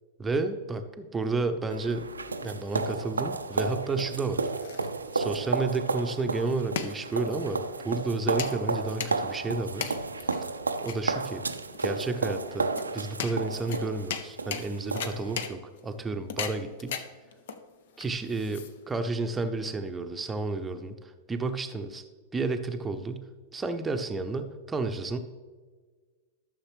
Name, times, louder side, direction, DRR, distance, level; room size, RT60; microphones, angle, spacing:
voice 1, 0.2-2.1 2.4-4.5 5.1-9.9 10.8-11.4 11.8-12.7 12.9-16.9 18.0-22.0 22.3-23.3 23.5-25.2, right 3 dB, 15° right, 7 dB, 0.7 m, -31 dB
sound 1, 1.7-15.4, right 3 dB, 80° right, 0.5 m, -32 dB
sound 2, 4.2-19.1, left 7 dB, 55° left, 0.7 m, -39 dB
13.0 x 6.5 x 3.2 m, 1.4 s
figure-of-eight pair, 95°, 0 cm